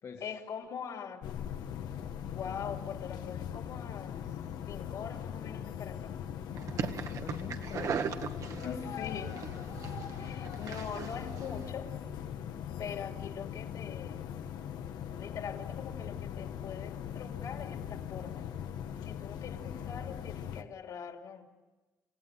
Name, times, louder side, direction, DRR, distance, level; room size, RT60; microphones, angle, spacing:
voice 1, 0.2-1.3 2.3-4.2 4.7-6.1 7.7-8.0 8.3-9.4 10.2-11.9 12.8-14.3 15.2-18.4 19.0-21.5, left 7 dB, 65° left, 3 dB, 3.2 m, -43 dB
sound 1, 1.2-20.6, left 9 dB, 90° left, 1.3 m, -40 dB
sound 2, 6.6-11.7, right 7 dB, 55° right, 1.4 m, -39 dB
voice 2, 7.0-8.0 8.5-9.8, left 5 dB, 50° left, 3 dB, 2.4 m, -45 dB
29.5 x 17.0 x 9.2 m, 1.2 s
cardioid pair, 145°, 7 cm